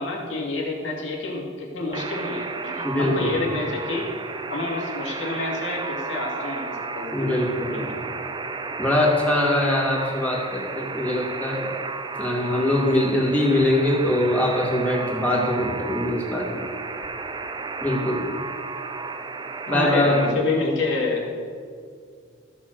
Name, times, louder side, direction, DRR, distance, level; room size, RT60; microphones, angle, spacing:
voice 1, 0.0-4.1 4.5-7.4 7.7-7.8 19.7-21.3, left 3 dB, 80° left, -1 dB, 2.3 m, -28 dB
Alarm, 1.9-20.3, right 4 dB, 25° right, 0.4 m, -33 dB
voice 2, 2.8-3.4 7.1-8.0 8.8-11.7 12.2-16.7 17.8-18.2 19.7-20.3, left 1 dB, 10° left, -2 dB, 1.8 m, -22 dB
14.5 x 5.5 x 6.4 m, 2.2 s
head